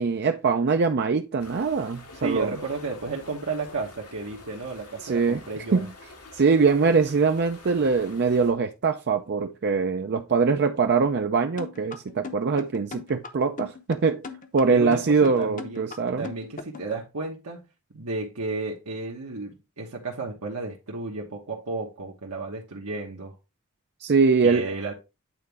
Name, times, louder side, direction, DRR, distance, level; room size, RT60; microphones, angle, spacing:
voice 1, 0.0-2.5 5.0-5.4 5.7-5.9 6.3-14.3 14.5-16.3 24.0-24.7, right 5 dB, 50° right, 0.5 m, -23 dB
sound 1, 1.4-8.5, left 2 dB, 90° left, 2.2 m, -48 dB
voice 2, 2.2-5.9 14.7-15.9 16.2-17.7 17.9-23.3 24.4-24.9, right 3 dB, 75° right, 1.2 m, -33 dB
sound 2, 11.6-16.9, left 4 dB, 35° left, 0.8 m, -38 dB
8.9 x 4.0 x 3.4 m
head